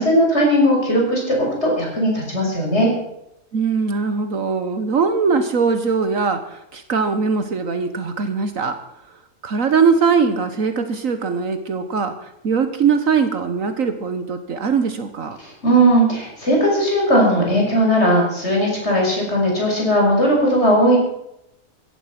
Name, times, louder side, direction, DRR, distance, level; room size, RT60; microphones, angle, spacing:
voice 1, 0.0-2.9 15.4-21.0, equal, 50° left, -2 dB, 6.6 m, -17 dB
voice 2, 3.5-8.8 9.4-12.1 12.4-15.4, right 5 dB, 65° right, 9 dB, 1.6 m, -21 dB
16.0 x 15.0 x 5.9 m, 0.83 s
omnidirectional pair, 1.5 m